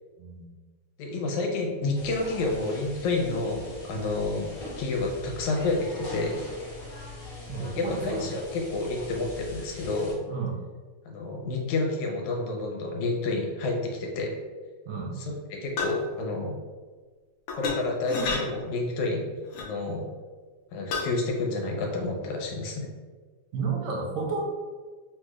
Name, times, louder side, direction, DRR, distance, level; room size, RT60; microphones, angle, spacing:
voice 1, 1.0-4.5 4.8-6.4 7.6-10.2 11.1-14.4 15.2-16.5 17.5-19.3 19.6-20.0 20.7-22.9, left 2 dB, 85° left, 0 dB, 2.2 m, -29 dB
sound 1, 1.9-10.1, left 2 dB, 50° left, 1.0 m, -42 dB
voice 2, 7.5-8.3 10.3-10.5 14.9-15.2 23.5-24.4, right 4 dB, 75° right, -1 dB, 1.9 m, -31 dB
sound 2, 15.8-16.1 17.5-17.8 18.1-18.4 19.5-19.7 20.9-21.1, left 4 dB, 65° left, 1.4 m, -29 dB
6.0 x 2.4 x 3.1 m, 1.4 s
omnidirectional pair, 3.3 m